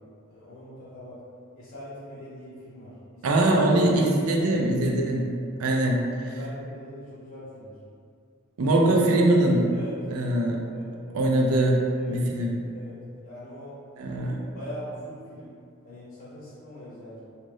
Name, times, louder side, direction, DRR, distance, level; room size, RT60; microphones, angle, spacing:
voice 1, 0.3-1.2 1.6-3.4 5.6-7.7 9.7-10.0 10.7-11.2 11.9-12.2 12.7-13.0 13.2-13.8 14.3-15.5 15.8-17.2, equal, 40° left, -10 dB, 0.6 m, -42 dB
voice 2, 3.2-5.3 5.6-6.1 8.6-9.7 10.1-10.7 11.1-12.5 14.0-14.4, right 1 dB, 75° right, 0 dB, 0.4 m, -22 dB
2.6 x 2.4 x 3.2 m, 2.3 s
head